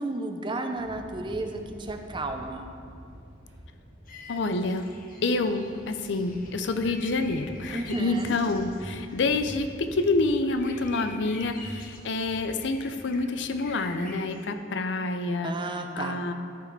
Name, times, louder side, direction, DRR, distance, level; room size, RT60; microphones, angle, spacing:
voice 1, 0.0-2.7 7.7-8.4 15.4-16.2, right 2 dB, 25° right, 5 dB, 0.6 m, -33 dB
sound 1, 0.7-14.0, equal, 70° right, 2.3 m, -46 dB
sound 2, 4.1-14.5, left 3 dB, 50° left, 1.1 m, -48 dB
voice 2, 4.3-4.9 5.2-15.6 16.0-16.3, left 3 dB, 70° left, 8 dB, 0.5 m, -27 dB
13.0 x 4.8 x 4.6 m, 2.3 s
head